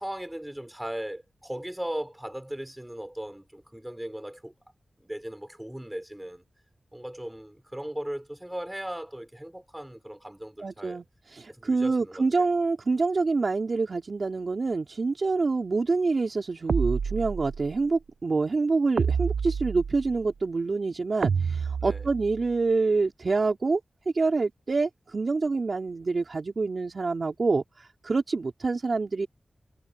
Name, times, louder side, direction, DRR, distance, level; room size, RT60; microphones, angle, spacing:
voice 1, 0.0-4.5 5.0-6.4 6.9-11.0 11.5-12.5 21.8-22.1, right 1 dB, 10° right, 5.0 m, -37 dB
voice 2, 10.6-23.8 24.0-29.3, right 3 dB, 65° right, 3.2 m, -26 dB
sound 1, 16.7-17.8 19.0-20.2 21.2-22.5, right 6 dB, 90° right, 0.4 m, -28 dB
cardioid pair, 40°, 0 cm